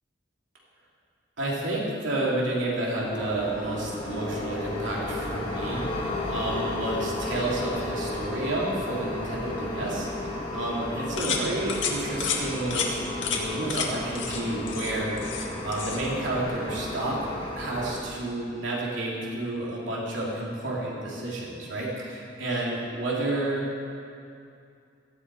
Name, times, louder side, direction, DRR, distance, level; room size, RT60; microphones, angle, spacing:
voice 1, 1.4-15.1 15.6-17.3 17.5-23.6, right 2 dB, 65° right, -4 dB, 3.2 m, -30 dB
sound 1, 3.0-18.0, left 2 dB, 25° left, 2.3 m, -33 dB
sound 2, 11.2-11.4 11.7-11.9 12.2-12.4 12.7-12.9 13.2-13.4 13.7-13.9 14.1-14.4 14.7-15.5 15.7-16.0, left 7 dB, 65° left, 1.9 m, -30 dB
17.5 x 14.5 x 4.9 m, 2.5 s
head